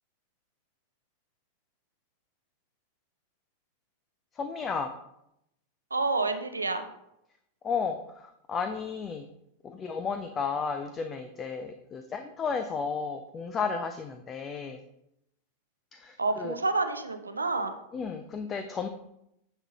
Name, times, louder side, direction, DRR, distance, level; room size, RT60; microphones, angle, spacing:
voice 1, 4.4-4.9 7.6-8.0 8.5-9.3 9.6-14.8 16.0-16.5 17.9-18.9, left 5 dB, 25° left, 8 dB, 0.5 m, -33 dB
voice 2, 5.9-6.9 16.2-17.7, right 3 dB, 80° right, 8 dB, 0.6 m, -28 dB
9.0 x 3.8 x 4.0 m, 0.81 s
figure-of-eight pair, 90°, 0 cm